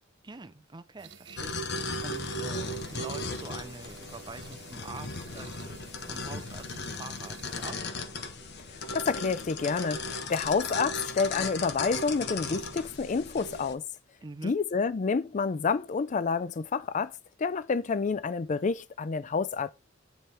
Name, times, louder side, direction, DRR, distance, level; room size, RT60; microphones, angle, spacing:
voice 1, 0.2-1.8 2.0-5.1 5.3-7.8 14.2-14.6, right 3 dB, 25° right, 0.6 m, -45 dB
sound 1, 1.0-7.7, right 6 dB, 65° right, 0.9 m, -53 dB
sound 2, 1.4-13.7, left 3 dB, 60° left, 1.0 m, -36 dB
Wind instrument woodwind instrument, 2.3-10.0, left 1 dB, 45° right, 1.2 m, -55 dB
voice 2, 8.9-13.8 14.4-17.1 17.4-19.7, left 5 dB, 40° left, 0.4 m, -29 dB
9.3 x 3.4 x 4.2 m
head